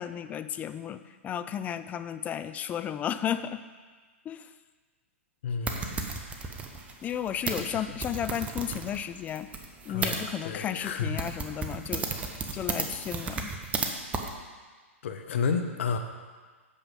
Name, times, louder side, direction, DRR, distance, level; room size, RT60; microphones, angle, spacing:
voice 1, 0.0-3.6 4.3-4.5 7.0-9.5 9.9-12.1 12.5-13.5, left 9 dB, 20° left, 12 dB, 0.4 m, -33 dB
voice 2, 5.4-6.1 7.4-7.9 9.9-11.2 15.0-16.0, left 5 dB, 65° left, 6 dB, 1.0 m, -32 dB
sound 1, 5.7-10.2 10.8-10.9 11.2-13.9 14.1-14.3, right 4 dB, 20° right, 1.0 m, -34 dB
8.7 x 6.9 x 5.3 m, 1.4 s
hypercardioid pair, 120°, 7 cm